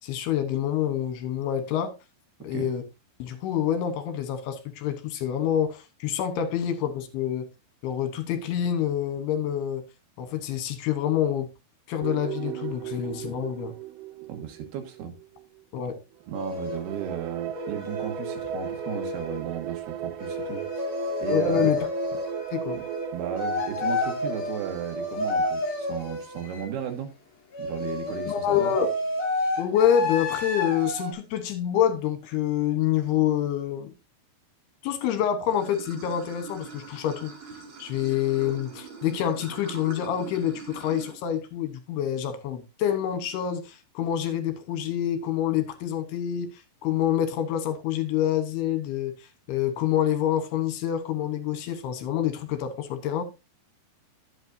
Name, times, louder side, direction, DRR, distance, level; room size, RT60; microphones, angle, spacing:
voice 1, 0.0-1.9 2.4-2.8 3.2-7.5 7.8-9.8 10.2-11.5 11.9-13.7 15.7-15.9 21.3-21.8 22.5-22.8 28.3-28.9 29.6-33.9 34.8-37.3 37.8-49.1 49.5-53.2, left 10 dB, 75° left, 2.9 m, -27 dB
sound 1, 12.0-15.6 16.2-26.8, right 13 dB, 90° right, 3.1 m, -37 dB
voice 2, 14.3-15.1 16.3-20.6 21.2-21.7 22.7-22.8 23.1-27.1 27.6-28.7, right 9 dB, 70° right, 3.3 m, -35 dB
sound 2, 16.3-16.8 17.5-19.4 20.2-23.1 23.4-26.7 27.5-31.1, left 2 dB, 55° left, 4.2 m, -30 dB
Water / Sink (filling or washing), 35.5-41.1, right 4 dB, 55° right, 2.5 m, -42 dB
11.5 x 8.0 x 2.6 m
omnidirectional pair, 4.9 m